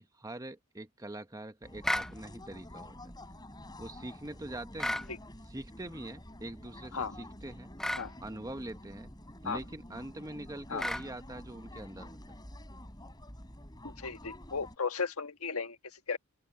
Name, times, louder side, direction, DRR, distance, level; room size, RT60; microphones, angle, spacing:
voice 1, 0.0-2.9 3.8-5.0 5.5-7.7 8.2-9.1 9.4-12.2, right 1 dB, 15° right, 1.0 m, -43 dB
sound 1, 1.6-14.8, left 1 dB, 20° left, 7.5 m, -49 dB
sound 2, 1.8-2.1 4.8-5.1 7.8-8.1 10.8-11.1, left 1 dB, ahead, 0.4 m, -32 dB
voice 2, 13.8-16.2, left 5 dB, 85° left, 1.6 m, -35 dB
open air
head